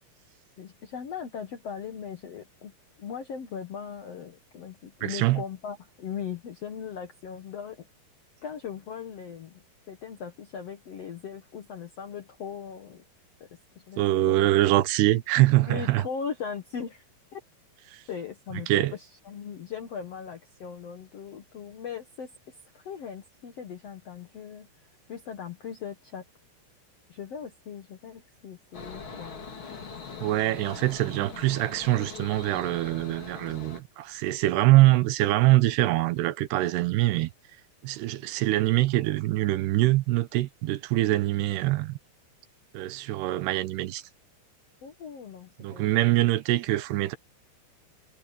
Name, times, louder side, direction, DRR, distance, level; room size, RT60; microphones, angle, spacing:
voice 1, 0.6-2.7 3.0-7.9 8.4-13.1 13.4-13.5 13.7-14.5 15.6-17.1 17.3-17.4 18.1-24.7 25.1-26.2 27.1-30.6 36.8-36.9 44.8-45.9, left 7 dB, 70° left, 1.5 m, -39 dB
voice 2, 5.0-5.4 14.0-16.0 17.9-18.0 18.7-18.9 30.2-37.3 37.8-42.0 42.7-44.0 45.6-47.2, right 16 dB, 80° right, 2.8 m, -24 dB
sound 1, 28.7-33.8, left 5 dB, 35° left, 2.9 m, -42 dB
omnidirectional pair, 4.9 m